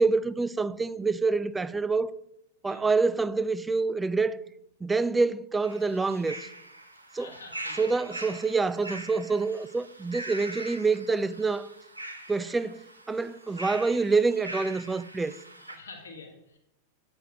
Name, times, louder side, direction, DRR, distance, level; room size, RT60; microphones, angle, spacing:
voice 1, 0.0-2.1 2.6-4.4 4.8-6.5 7.1-7.3 7.8-11.7 12.3-15.3, right 4 dB, 10° right, 0.4 m, -26 dB
sound 1, 5.6-15.8, right 1 dB, 85° right, 1.0 m, -42 dB
voice 2, 7.2-7.9 15.7-16.6, left 4 dB, 70° left, 1.9 m, -47 dB
8.9 x 6.1 x 5.1 m
figure-of-eight pair, 90°, 0 cm